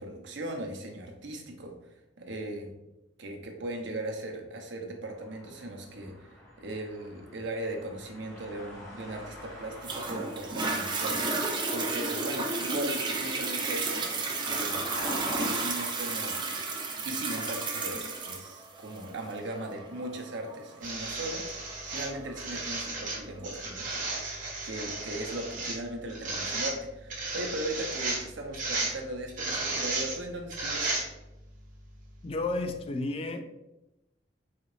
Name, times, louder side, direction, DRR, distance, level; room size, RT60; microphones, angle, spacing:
voice 1, 0.0-1.7 2.2-2.7 3.2-6.3 6.6-14.1 14.4-14.8 15.4-16.4 17.0-21.6 21.9-31.0, right 1 dB, 70° right, 2 dB, 0.7 m, -38 dB
sound 1, 5.1-16.0, left 1 dB, 15° left, 1.0 m, -46 dB
Toilet flush, 9.8-22.9 23.5-23.6, right 3 dB, 25° right, 0.5 m, -32 dB
sound 2, 20.8-31.4 32.4-32.5, right 3 dB, 45° right, 1.2 m, -34 dB
voice 2, 32.2-33.5, left 2 dB, 30° left, 7 dB, 0.3 m, -32 dB
4.0 x 2.9 x 3.1 m, 0.93 s
head